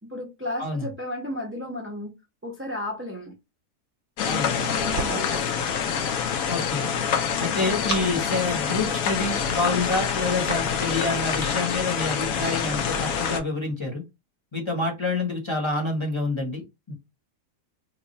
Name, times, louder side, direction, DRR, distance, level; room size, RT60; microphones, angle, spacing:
voice 1, 0.0-2.1 2.4-3.3 4.7-5.7, left 1 dB, 15° right, 0.4 m, -34 dB
sound 1, 4.2-13.4, left 7 dB, 70° left, 1.0 m, -26 dB
voice 2, 4.3-4.9 6.5-6.9 7.4-14.0 14.5-16.6 16.9-17.0, left 3 dB, 20° left, 0.8 m, -28 dB
sound 2, 4.5-5.5 7.5-8.6 9.9-10.8, right 3 dB, 40° right, 1.0 m, -35 dB
3.2 x 2.3 x 4.0 m
omnidirectional pair, 1.7 m